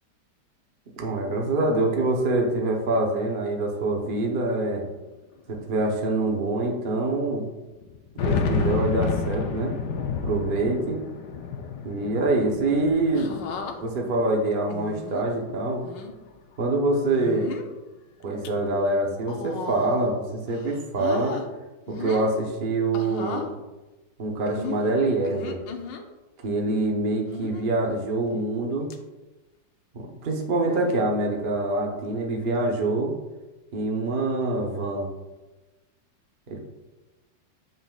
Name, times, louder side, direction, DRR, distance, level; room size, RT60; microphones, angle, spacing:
voice 1, 1.0-4.8 5.5-7.5 8.2-9.7 10.2-11.0 11.8-13.3 13.8-15.9 16.6-17.5 18.2-21.4 21.9-23.5 24.2-25.6 26.4-28.9 29.9-33.1 33.7-35.1 36.5-36.6, right 2 dB, 45° right, 0 dB, 0.7 m, -25 dB
sound 1, 4.3-4.4 4.5-4.6 5.5-5.6 6.1-6.2 7.8-14.2 14.6-15.6, left 5 dB, 70° left, 1.2 m, -30 dB
sound 2, 13.1-13.8 14.7-15.3 15.8-16.1 17.1-17.7 18.2-18.5 19.2-20.2 20.5-21.5 21.9-22.4 22.9-23.5 24.5-26.0 27.3-27.7 28.3-28.6 28.9-29.0 30.6-31.0 32.1-32.3, left 5 dB, 90° left, 1.4 m, -36 dB
7.4 x 5.5 x 2.3 m, 1.1 s
omnidirectional pair, 1.9 m